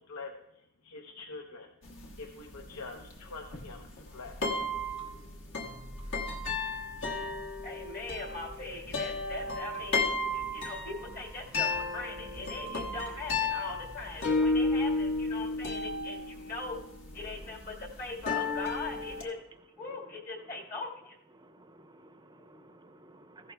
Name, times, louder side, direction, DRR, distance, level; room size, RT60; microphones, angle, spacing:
voice 1, 0.8-1.7 2.2-4.3, left 3 dB, 90° left, 4 dB, 0.8 m, -44 dB
sound 1, 1.8-19.2, left 3 dB, 60° left, 1.4 m, -33 dB
voice 2, 7.6-16.8 17.1-19.4 19.8-21.2, left 3 dB, 45° left, -1 dB, 1.8 m, -40 dB
voice 3, 21.4-23.5, right 2 dB, 20° right, 8 dB, 0.6 m, -55 dB
14.5 x 11.5 x 2.2 m, 0.84 s
head